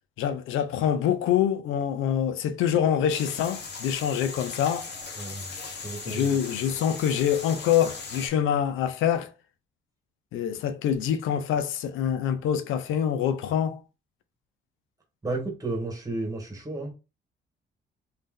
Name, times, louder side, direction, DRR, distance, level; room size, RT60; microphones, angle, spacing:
voice 1, 0.2-4.9 6.1-9.3 10.3-13.8, left 9 dB, 85° left, 0.5 m, -25 dB
sound 1, 3.1-8.3, left 4 dB, 60° left, 1.2 m, -38 dB
voice 2, 5.2-5.5 5.8-6.4 15.2-16.9, right 2 dB, 15° right, 1.5 m, -32 dB
3.2 x 2.7 x 3.6 m
cardioid pair, 90°, 20 cm